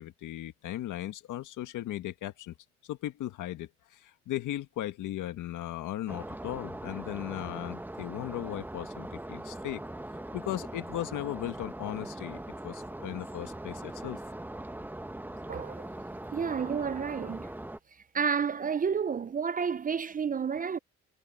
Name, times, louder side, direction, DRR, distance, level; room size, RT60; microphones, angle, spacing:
voice 1, 0.0-2.5 2.8-9.8 10.3-14.2, left 13 dB, 85° left, 1.8 m, -37 dB
sound 1, 6.1-17.8, right 1 dB, 5° right, 0.9 m, -41 dB
voice 2, 15.5-15.8 16.3-17.5 18.1-20.8, right 6 dB, 30° right, 0.4 m, -30 dB
cardioid pair, 90°, 30 cm